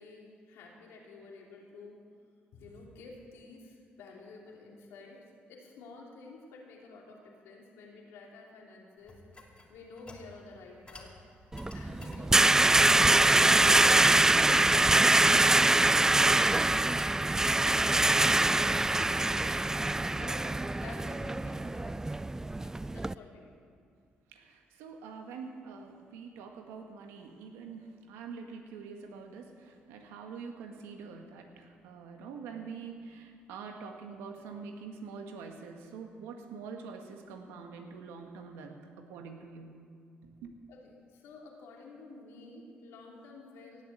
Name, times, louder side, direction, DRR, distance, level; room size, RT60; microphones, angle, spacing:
voice 1, 0.0-2.0 2.5-9.2 9.7-11.1 11.7-12.4 12.9-17.4 17.7-18.1 18.3-22.0 22.3-23.6 40.7-43.8, left 3 dB, 85° left, -1 dB, 2.9 m, -51 dB
sound 1, 9.1-10.3 10.9-11.1 11.5-12.2 12.7-13.1 13.6-14.0 14.8-15.4 15.7-15.9 16.1-17.8 18.2-18.6 19.0-19.4, left 2 dB, 25° left, 2.7 m, -49 dB
sound 2, 11.5-23.1, right 2 dB, 15° right, 0.3 m, -24 dB
voice 2, 24.3-39.7 40.2-40.5, right 5 dB, 90° right, 4 dB, 1.6 m, -45 dB
17.5 x 7.1 x 8.4 m, 2.2 s
supercardioid pair, 65°, 4 cm